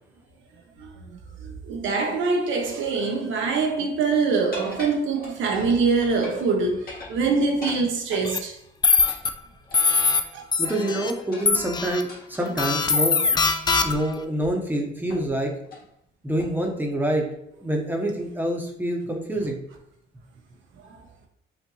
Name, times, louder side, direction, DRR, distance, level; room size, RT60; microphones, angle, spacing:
voice 1, 0.8-8.6 10.3-10.4 20.9-21.0, right 4 dB, 75° right, 0.8 m, -24 dB
sound 1, 4.5-5.7 6.0-6.5 6.8-8.3 9.1-10.1 10.7-12.9 13.7-14.0 14.4-14.5 15.1-15.4 15.6-15.9 16.4-16.7, left 2 dB, 50° left, 1.7 m, -41 dB
sound 2, 8.2-8.4 8.8-9.3 9.7-10.2 10.5-11.1 11.5-12.0 12.6-14.1, left 4 dB, 20° left, 0.4 m, -21 dB
voice 2, 10.6-13.4 13.8-15.5 16.2-17.2 17.6-19.6, right 1 dB, 10° right, 0.9 m, -26 dB
5.8 x 2.6 x 3.0 m
cardioid pair, 90°, 20 cm